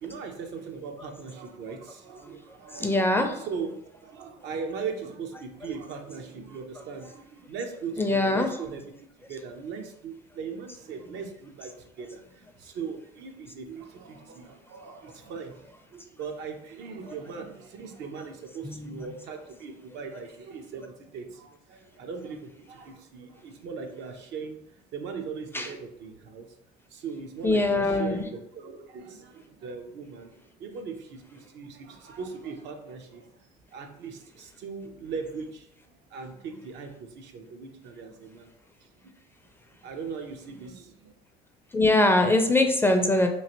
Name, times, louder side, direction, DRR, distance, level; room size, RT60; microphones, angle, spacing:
voice 1, 0.0-8.8 9.3-12.2 12.6-15.6 15.9-24.6 24.9-26.5 26.9-30.3 30.6-33.3 33.7-35.7 36.1-38.5 39.0-39.1 39.8-41.1, right 5 dB, 70° right, 4 dB, 0.6 m, -39 dB
voice 2, 2.8-3.3 8.0-8.6 18.6-19.1 25.5-25.7 27.4-28.3 41.7-43.3, left 2 dB, 10° left, 4 dB, 0.4 m, -23 dB
3.0 x 2.5 x 2.9 m, 0.76 s
supercardioid pair, 80°, 19 cm